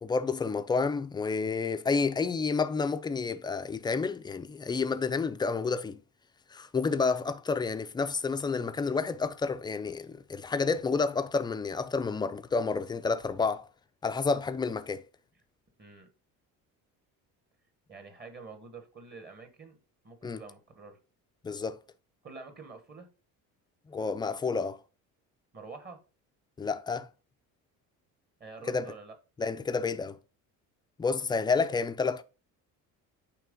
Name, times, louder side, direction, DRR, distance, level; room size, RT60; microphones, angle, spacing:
voice 1, 0.0-6.0 6.5-13.6 14.0-15.0 20.2-20.4 21.4-21.8 23.9-24.8 26.6-27.1 28.7-28.9 29.4-30.2 31.0-32.2, left 4 dB, 15° left, 0.4 m, -30 dB
voice 2, 17.9-19.8 20.0-21.0 22.2-23.1 25.5-26.0 28.4-29.2, right 4 dB, 30° right, 1.3 m, -47 dB
8.9 x 3.4 x 3.8 m
cardioid pair, 140°, 34 cm